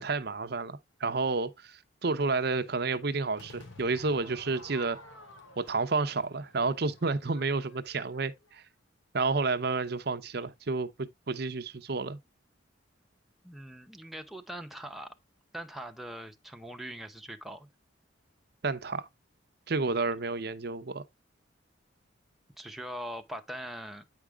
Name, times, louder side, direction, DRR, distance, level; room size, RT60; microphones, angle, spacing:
voice 1, 0.0-5.0 5.6-8.6 9.1-12.2 18.6-19.1 19.7-21.0, right 3 dB, 50° right, 0.6 m, -30 dB
Crowd / Fireworks, 3.4-8.6, left 2 dB, 75° left, 2.4 m, -52 dB
voice 2, 13.4-15.1 15.5-17.7 22.6-24.0, equal, ahead, 0.7 m, -41 dB
9.2 x 4.9 x 3.4 m
head